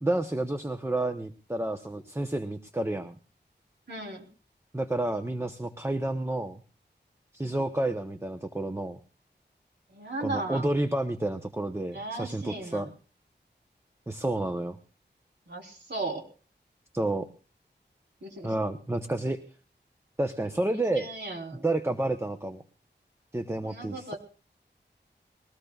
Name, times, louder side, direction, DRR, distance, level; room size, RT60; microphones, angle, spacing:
voice 1, 0.0-3.2 4.7-6.6 7.3-9.0 10.2-12.9 14.1-14.8 16.9-17.3 18.4-19.4 20.2-21.1 21.6-22.6 23.3-24.1, right 1 dB, 15° right, 8 dB, 0.9 m, -30 dB
voice 2, 3.9-4.3 9.9-10.7 11.9-12.9 15.5-16.2 18.2-18.5 20.9-21.6 23.6-24.2, right 2 dB, 70° right, 1 dB, 3.9 m, -36 dB
21.0 x 18.5 x 2.4 m, 0.38 s
wide cardioid pair, 75°, 18 cm